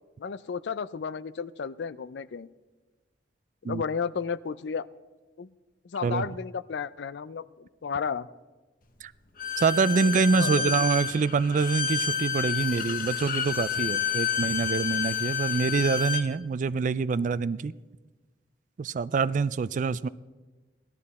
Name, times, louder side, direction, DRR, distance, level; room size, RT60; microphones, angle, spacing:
voice 1, 0.2-2.5 3.6-4.9 5.4-5.5 5.8-8.3 9.8-10.7, left 6 dB, 70° left, 0.4 m, -33 dB
Bowed string instrument, 9.4-16.3, left 7 dB, 50° left, 1.0 m, -29 dB
voice 2, 9.6-17.7 18.8-20.1, right 4 dB, 45° right, 0.3 m, -26 dB
17.5 x 12.0 x 4.2 m
head